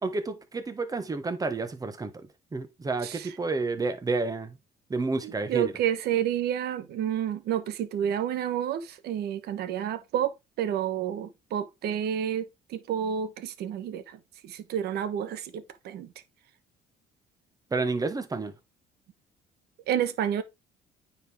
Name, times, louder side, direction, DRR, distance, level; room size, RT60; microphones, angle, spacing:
voice 1, 0.0-2.1 2.5-4.6 4.9-5.7 17.7-18.5, right 3 dB, 20° right, 1.4 m, -30 dB
voice 2, 5.2-10.3 10.6-12.5 12.7-14.0 14.4-16.1 19.9-20.4, right 9 dB, 75° right, 1.2 m, -29 dB
9.2 x 4.8 x 3.5 m
cardioid pair, 110°, 17 cm